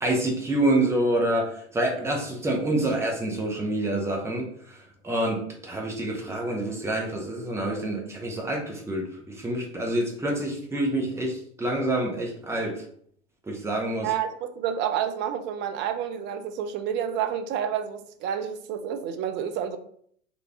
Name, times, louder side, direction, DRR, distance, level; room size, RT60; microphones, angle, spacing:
voice 1, 0.0-4.8 5.0-5.4 5.6-12.7 13.5-14.1, right 1 dB, 5° right, 0 dB, 0.9 m, -27 dB
voice 2, 14.0-19.8, right 9 dB, 30° right, 8 dB, 0.5 m, -29 dB
4.3 x 2.6 x 3.5 m, 0.64 s
figure-of-eight pair, 85°, 36 cm